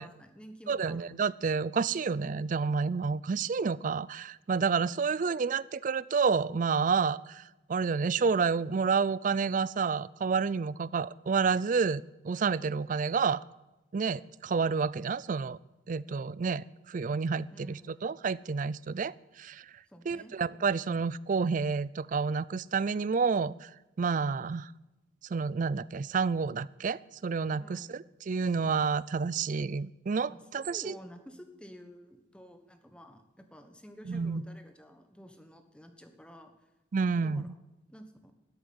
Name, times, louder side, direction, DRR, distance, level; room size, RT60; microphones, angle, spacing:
voice 1, 0.0-1.2 12.6-12.9 17.5-18.1 19.9-20.4 27.6-27.9 30.3-36.5 37.2-37.5 37.9-38.3, equal, 5° left, 7 dB, 1.2 m, -51 dB
voice 2, 0.7-7.4 7.7-13.4 13.9-15.6 15.9-19.7 20.1-23.7 24.0-24.7 25.3-28.0 28.3-30.9 34.1-34.4 36.9-37.5, right 5 dB, 45° right, 20 dB, 0.4 m, -29 dB
13.0 x 8.4 x 9.4 m, 1.0 s
head